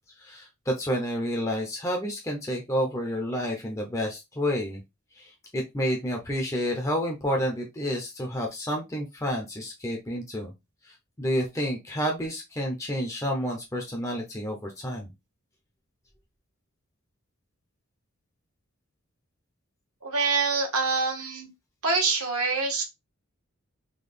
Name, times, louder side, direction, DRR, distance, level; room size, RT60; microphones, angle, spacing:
voice 1, 0.2-4.8 5.2-10.5 10.8-15.1, equal, 15° left, 0.6 m, -30 dB
voice 2, 20.0-21.5 21.8-22.8, right 4 dB, 85° right, 1.3 m, -25 dB
3.8 x 2.3 x 3.3 m
head